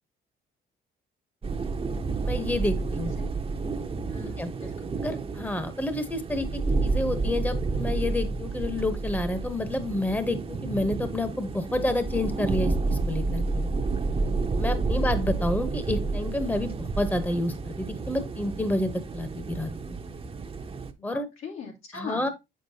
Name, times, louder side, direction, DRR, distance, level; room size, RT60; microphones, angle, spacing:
sound 1, 1.4-20.9, right 3 dB, 30° right, 0.8 m, -30 dB
voice 1, 2.2-3.1 4.4-4.5 5.0-13.7 14.6-19.7 21.0-21.3 21.9-22.3, left 1 dB, 10° left, 0.9 m, -29 dB
voice 2, 2.7-3.3 4.1-4.9 14.7-15.1 21.0-22.3, left 5 dB, 85° left, 2.6 m, -41 dB
7.5 x 6.5 x 2.7 m
cardioid pair, 90°, 20 cm